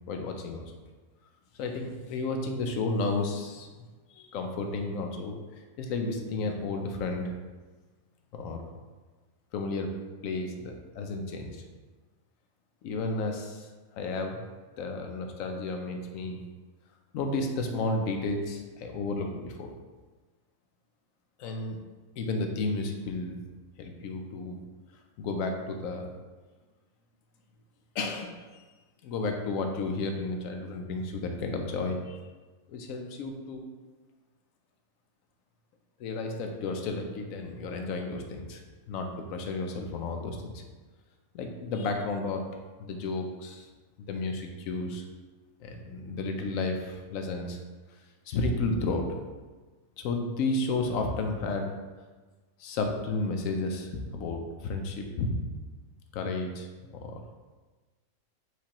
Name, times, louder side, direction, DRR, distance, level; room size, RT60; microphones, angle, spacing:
voice 1, 0.1-0.7 1.6-3.7 4.1-5.3 5.8-7.3 8.3-8.7 9.5-9.9 10.2-11.6 12.8-13.7 13.9-14.4 14.8-16.4 17.1-19.7 21.4-21.8 22.2-23.4 23.8-24.6 25.2-26.1 27.9-28.6 29.0-32.2 32.7-33.7 36.0-40.6 41.3-42.5 42.8-43.7 44.1-45.0 45.6-47.6 48.3-49.1 50.0-51.7 52.6-55.4 56.1-57.2, left 3 dB, 75° left, 3 dB, 1.0 m, -32 dB
4.7 x 3.3 x 2.9 m, 1.3 s
omnidirectional pair, 1.5 m